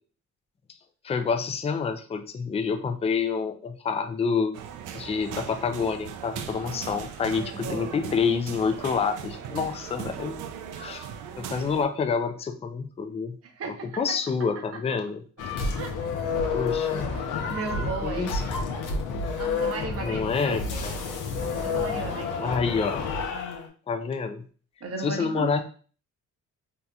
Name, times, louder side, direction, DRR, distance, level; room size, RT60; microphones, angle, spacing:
voice 1, 1.0-4.6 4.9-10.4 10.8-11.1 11.4-13.4 13.7-15.2 16.5-17.1 17.8-18.4 20.0-21.0 22.4-23.0 23.9-24.5 25.0-25.6, left 5 dB, 20° left, 8 dB, 0.4 m, -28 dB
sound 1, 4.5-11.9, right 8 dB, 85° right, 0.5 m, -38 dB
voice 2, 7.3-7.9 13.4-14.2 15.7-16.0 17.3-18.3 19.4-20.9 21.5-22.5 24.8-25.5, right 3 dB, 50° right, 4 dB, 0.8 m, -36 dB
sound 2, 15.4-23.7, left 4 dB, 85° left, 0.7 m, -29 dB
3.7 x 2.8 x 2.3 m, 0.40 s
cardioid pair, 90°, 30 cm